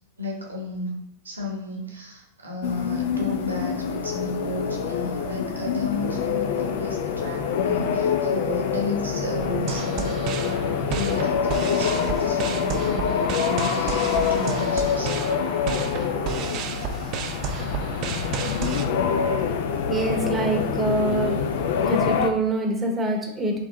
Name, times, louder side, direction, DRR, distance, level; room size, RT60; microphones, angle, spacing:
voice 1, 0.2-0.9 1.2-10.6 10.9-15.1, left 1 dB, 75° right, -1 dB, 1.1 m, -33 dB
sound 1, 2.6-22.3, left 7 dB, 55° left, 0.4 m, -25 dB
sound 2, 9.4-18.9, right 8 dB, 40° right, 0.4 m, -32 dB
voice 2, 19.9-21.4 21.8-23.6, right 2 dB, 15° right, 1 dB, 0.9 m, -25 dB
4.5 x 3.0 x 3.6 m, 0.82 s
figure-of-eight pair, 90°, 0 cm